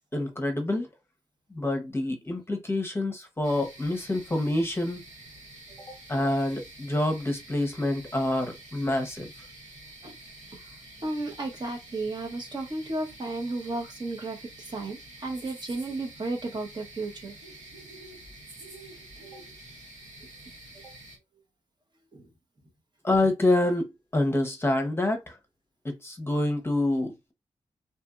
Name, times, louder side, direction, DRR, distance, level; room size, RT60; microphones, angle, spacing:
voice 1, 0.1-0.9 1.5-5.0 5.9-9.3 23.0-25.4 25.8-27.3, left 1 dB, 20° left, 0.8 m, -27 dB
sound 1, 3.4-21.2, right 2 dB, 85° right, 1.6 m, -48 dB
voice 2, 11.0-17.3 19.3-19.4 20.8-20.9 22.1-22.3, right 2 dB, 40° right, 0.9 m, -34 dB
2.7 x 2.6 x 2.4 m
cardioid pair, 70°, 12 cm